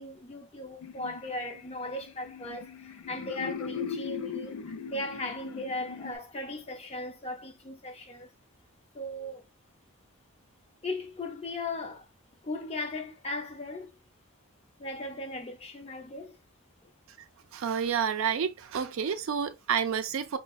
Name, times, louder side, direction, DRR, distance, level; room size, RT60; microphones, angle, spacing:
voice 1, 0.0-8.3 8.9-9.5 10.8-12.1 12.4-14.0 14.8-16.4, left 2 dB, 30° left, 0.5 m, -37 dB
sound 1, 0.8-6.2, left 6 dB, 90° left, 0.4 m, -39 dB
voice 2, 17.5-20.4, right 7 dB, 75° right, 0.4 m, -29 dB
4.2 x 2.1 x 2.2 m
head